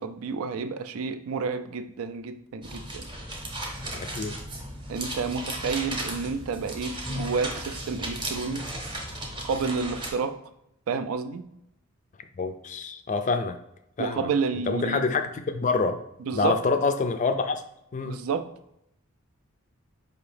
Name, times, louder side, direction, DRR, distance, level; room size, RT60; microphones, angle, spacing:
voice 1, 0.0-3.1 4.9-8.7 9.4-10.4 10.9-11.4 14.0-15.1 16.2-16.6 18.0-18.5, right 5 dB, 75° right, 9 dB, 0.4 m, -30 dB
sound 1, 2.6-10.1, right 1 dB, 20° right, 0.7 m, -35 dB
voice 2, 3.9-4.4 12.4-13.6 14.0-14.2 14.7-16.0 16.3-17.6 17.9-18.2, left 4 dB, 35° left, 8 dB, 0.3 m, -26 dB
4.9 x 2.8 x 3.2 m, 0.80 s
head